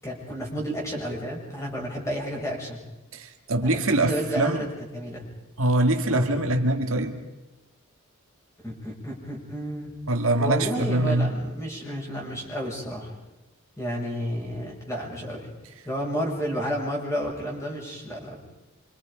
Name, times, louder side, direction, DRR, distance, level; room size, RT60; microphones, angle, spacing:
voice 1, 0.0-2.8 3.6-5.3 6.1-6.3 8.6-9.9 10.4-13.2 13.8-15.5 15.9-18.4, equal, 15° left, -2 dB, 6.9 m, -31 dB
voice 2, 3.1-4.6 5.6-7.2 10.1-11.3, right 2 dB, 65° right, 4 dB, 1.9 m, -23 dB
26.0 x 26.0 x 5.2 m, 0.98 s
head